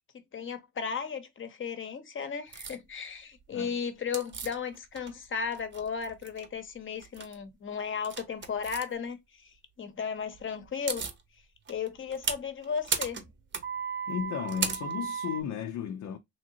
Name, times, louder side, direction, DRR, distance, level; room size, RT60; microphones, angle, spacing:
voice 1, 0.1-11.0 11.7-13.2, left 6 dB, 40° left, 0.9 m, -35 dB
sound 1, 2.5-2.8 4.1-5.2 5.5-6.5 7.0-7.3 8.0-8.8 10.4-10.5 10.6-11.2 11.7-15.4, right 6 dB, 40° right, 0.8 m, -34 dB
voice 2, 14.1-16.2, left 8 dB, 75° left, 0.6 m, -34 dB
3.4 x 2.7 x 2.6 m
cardioid pair, 90°, 30 cm